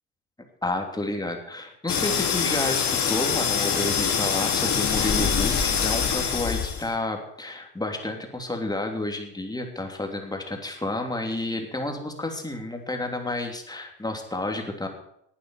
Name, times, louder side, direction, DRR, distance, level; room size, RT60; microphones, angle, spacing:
voice 1, 0.6-14.9, left 2 dB, 10° left, 3 dB, 3.1 m, -30 dB
sound 1, 1.9-6.9, left 7 dB, 50° left, 2.6 m, -24 dB
11.5 x 9.2 x 7.2 m, 0.73 s
hypercardioid pair, 70°, 37 cm